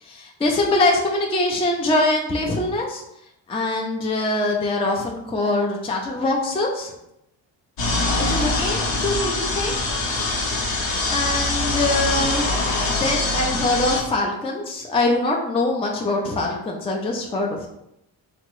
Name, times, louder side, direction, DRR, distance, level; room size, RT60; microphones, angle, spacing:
voice 1, 0.0-3.0 3.5-6.9 8.1-9.8 10.5-17.7, left 2 dB, 15° left, 0 dB, 0.3 m, -23 dB
sound 1, 7.8-14.0, left 2 dB, 75° left, 0.8 m, -23 dB
3.4 x 2.0 x 3.0 m, 0.83 s
cardioid pair, 85°, 43 cm